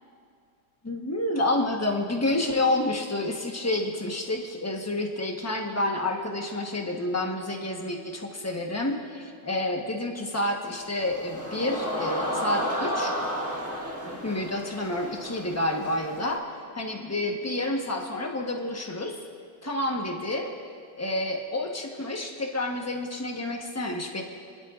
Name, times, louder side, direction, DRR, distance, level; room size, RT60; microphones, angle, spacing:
voice 1, 0.8-13.1 14.0-19.3 19.6-20.5 20.9-24.2, left 1 dB, 15° left, 0 dB, 0.7 m, -29 dB
sound 1, 10.8-16.4, equal, 10° right, 1.6 m, -32 dB
24.5 x 12.0 x 2.4 m, 2.3 s
omnidirectional pair, 2.0 m